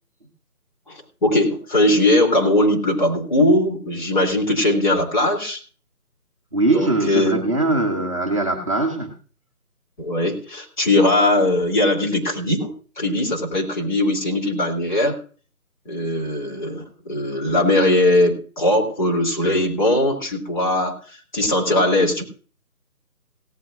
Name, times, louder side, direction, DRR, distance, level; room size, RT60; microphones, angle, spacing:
voice 1, 0.9-5.6 6.6-7.4 10.0-15.2 15.9-21.0 21.3-22.2, left 1 dB, 30° left, 0 dB, 3.5 m, -20 dB
voice 2, 6.5-9.1, right 2 dB, 20° right, -2 dB, 1.2 m, -21 dB
18.0 x 13.5 x 2.6 m, 0.39 s
figure-of-eight pair, 160°, 45 cm